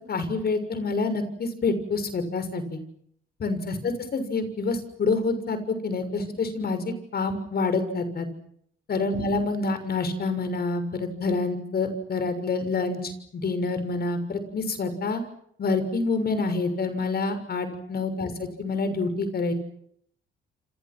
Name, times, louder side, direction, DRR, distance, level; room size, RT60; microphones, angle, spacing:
voice 1, 0.1-2.8 3.4-8.3 8.9-15.2 15.6-18.3 18.6-19.5, left 3 dB, 50° left, 10 dB, 6.5 m, -27 dB
29.5 x 27.0 x 6.3 m, 0.70 s
cardioid pair, 90°, 20 cm